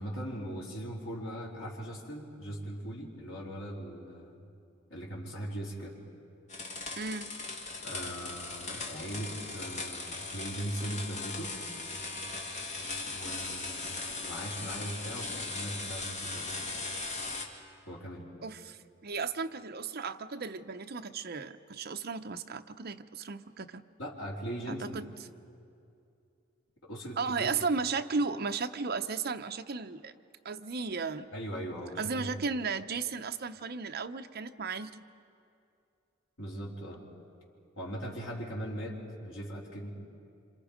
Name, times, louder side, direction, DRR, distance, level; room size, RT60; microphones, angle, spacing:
voice 1, 0.0-4.4 4.9-5.9 7.8-11.6 13.0-16.5 17.9-18.3 24.0-25.0 26.8-27.7 31.3-32.4 36.4-37.0 37.8-39.9, right 1 dB, 80° left, -4 dB, 4.1 m, -39 dB
sound 1, 6.5-17.5, left 3 dB, 35° left, 2.2 m, -38 dB
voice 2, 7.0-7.3 18.4-23.8 24.7-25.1 27.2-30.1 30.4-31.3 32.0-35.0, right 4 dB, 50° right, 7 dB, 0.7 m, -35 dB
27.0 x 27.0 x 5.1 m, 2.6 s
head